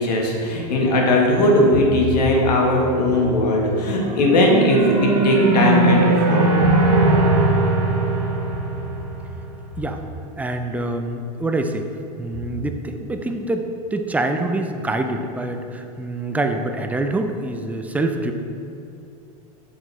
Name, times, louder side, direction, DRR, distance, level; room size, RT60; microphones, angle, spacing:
voice 1, 0.0-6.5, left 1 dB, 85° left, -1 dB, 1.4 m, -18 dB
sound 1, 3.9-9.4, right 2 dB, 75° right, 1.1 m, -19 dB
voice 2, 10.4-11.9 12.2-18.3, right 2 dB, 5° right, 5 dB, 0.4 m, -25 dB
7.3 x 5.5 x 3.3 m, 2.7 s
supercardioid pair, 125°, 20 cm